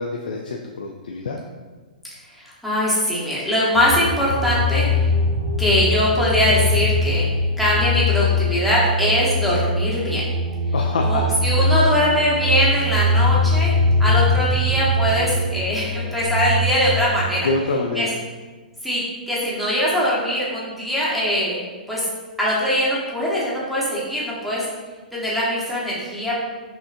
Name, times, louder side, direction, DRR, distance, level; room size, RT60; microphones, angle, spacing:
voice 1, 0.0-1.4 10.7-11.6 17.4-18.1, left 3 dB, 70° left, 1 dB, 0.3 m, -26 dB
voice 2, 2.3-5.1 5.6-7.3 7.6-10.2 11.0-13.7 14.0-17.5 17.9-18.1 18.8-21.6 21.9-22.0 22.4-24.6 25.1-26.4, equal, ahead, -8 dB, 1.2 m, -21 dB
sound 1, 3.8-17.2, left 1 dB, 20° right, 0.8 m, -21 dB
5.6 x 2.5 x 2.5 m, 1.3 s
figure-of-eight pair, 115°, 5 cm